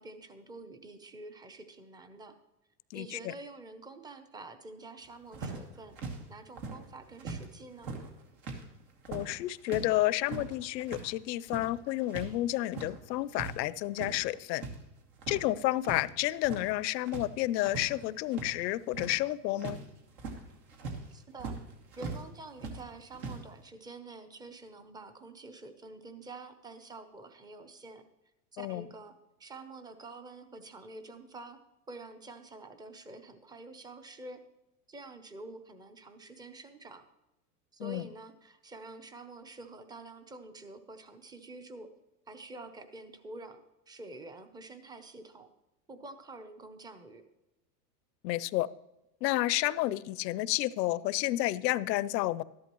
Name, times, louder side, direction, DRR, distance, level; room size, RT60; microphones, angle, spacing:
voice 1, 0.0-2.4 2.9-7.9 21.1-21.5 22.0-28.0 28.5-29.1 29.4-31.6 31.9-34.4 34.9-37.0 37.7-41.9 42.3-45.5 45.9-47.2, right 2 dB, 10° right, 9 dB, 0.6 m, -48 dB
voice 2, 2.9-3.3 9.1-14.6 15.3-19.8 28.6-28.9 37.8-38.0 48.2-48.7 49.2-52.4, left 16 dB, 80° left, 18 dB, 0.6 m, -30 dB
sound 1, 5.3-7.5 7.7-12.3 12.6-13.6 13.8-14.8 15.1-16.0 16.3-16.8 17.1-22.2 22.6-23.4, right 3 dB, 75° right, 2.6 m, -41 dB
13.0 x 11.0 x 3.0 m, 0.94 s
supercardioid pair, 135°, 49 cm